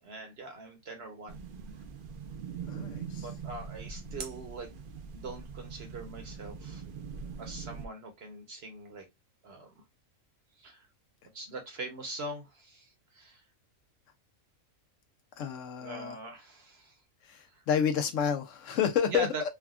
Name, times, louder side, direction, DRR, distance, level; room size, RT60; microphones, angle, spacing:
voice 1, 0.0-1.4 3.1-4.7 5.1-6.8 7.4-9.0 9.4-9.7 10.6-10.9 11.3-13.4 15.8-16.9 17.5-17.6 19.1-19.4, right 2 dB, 55° right, 0.9 m, -42 dB
sound 1, 1.3-7.9, right 6 dB, 70° right, 0.5 m, -42 dB
voice 2, 2.7-3.3 15.4-16.2 17.2-19.3, left 8 dB, 70° left, 0.9 m, -30 dB
3.4 x 2.2 x 2.3 m
omnidirectional pair, 1.4 m